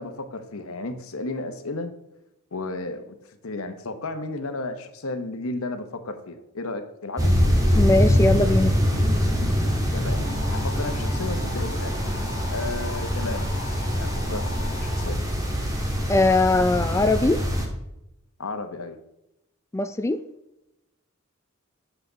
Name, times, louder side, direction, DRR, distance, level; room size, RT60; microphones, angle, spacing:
voice 1, 0.0-1.9 2.5-3.2 3.4-7.4 9.9-10.2 10.5-12.0 12.5-13.5 14.0-15.2 18.4-19.0, left 2 dB, 85° left, 8 dB, 1.0 m, -33 dB
sound 1, 7.2-17.6, equal, 15° right, 1.6 m, -24 dB
voice 2, 7.7-8.7 16.1-17.4 19.7-20.2, left 2 dB, 15° left, 9 dB, 0.3 m, -20 dB
sound 2, 10.1-15.1, left 4 dB, 50° left, 1.0 m, -40 dB
8.3 x 6.8 x 4.0 m, 0.87 s
head